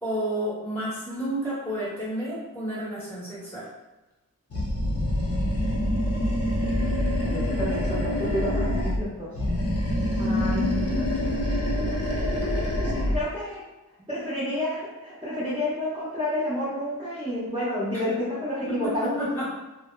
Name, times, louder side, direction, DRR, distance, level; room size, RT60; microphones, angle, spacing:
voice 1, 0.0-3.6 17.9-18.0 18.7-19.5, right 1 dB, 5° left, -10 dB, 1.0 m, -31 dB
Animal, 4.5-9.0 9.3-13.2, left 1 dB, 40° left, 0.6 m, -26 dB
voice 2, 7.2-9.3 10.2-11.1 12.3-12.4 12.7-13.6 14.1-19.5, left 1 dB, 15° right, -11 dB, 0.7 m, -30 dB
2.8 x 2.0 x 2.2 m, 1.1 s
wide cardioid pair, 85°, 36 cm